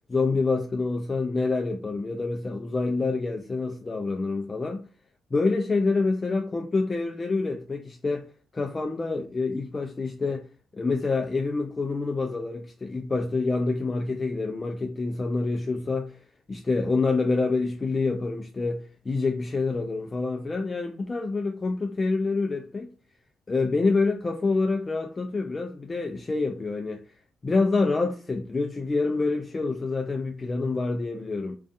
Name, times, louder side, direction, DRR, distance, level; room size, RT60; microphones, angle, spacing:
voice 1, 0.1-4.8 5.3-8.3 8.5-10.5 10.7-16.2 16.5-22.9 23.5-27.0 27.4-31.6, left 3 dB, 25° left, 0.3 m, -27 dB
2.5 x 2.2 x 2.4 m
cardioid pair, 90°, 0 cm